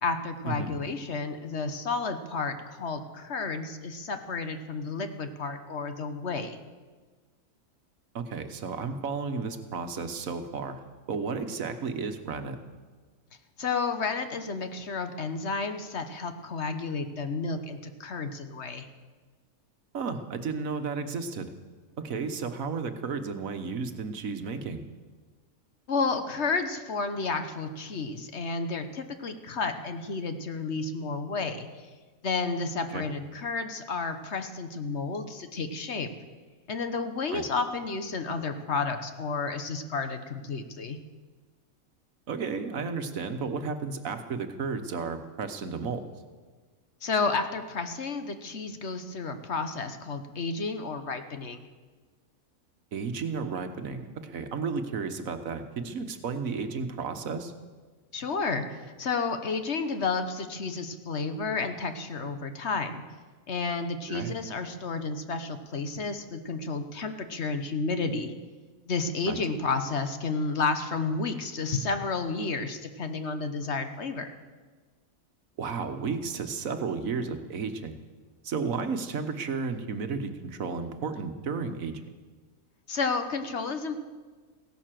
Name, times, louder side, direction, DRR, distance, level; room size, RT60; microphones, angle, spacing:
voice 1, 0.0-6.6 13.6-18.9 25.9-31.9 32.2-36.1 36.7-41.0 47.0-51.7 58.1-63.0 63.5-68.3 68.9-74.3 82.9-84.0, left 4 dB, 55° left, 8 dB, 1.3 m, -31 dB
voice 2, 8.1-10.7 11.1-12.6 19.9-21.5 22.0-24.8 32.9-33.1 37.3-37.4 42.3-46.1 52.9-57.5 64.1-64.3 69.3-69.4 75.6-78.0 78.4-82.0, right 5 dB, 70° right, 8 dB, 1.5 m, -33 dB
16.0 x 11.5 x 7.6 m, 1.4 s
omnidirectional pair, 1.5 m